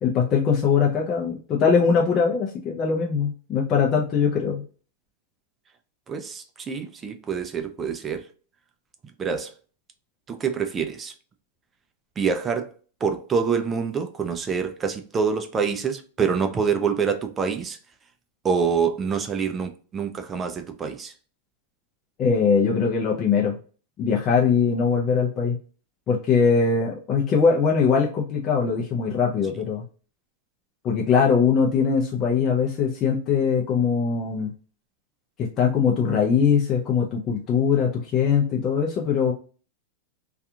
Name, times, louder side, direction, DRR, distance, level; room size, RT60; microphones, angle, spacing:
voice 1, 0.0-4.6 22.2-23.6 24.0-25.6 26.1-29.8 30.8-34.5 35.4-39.3, left 6 dB, 30° left, 0.5 m, -21 dB
voice 2, 6.1-8.3 9.2-9.6 10.3-11.1 12.2-12.7 13.0-17.8 18.4-21.1, right 6 dB, 20° right, 0.3 m, -26 dB
2.7 x 2.4 x 2.3 m
hypercardioid pair, 130°, 0 cm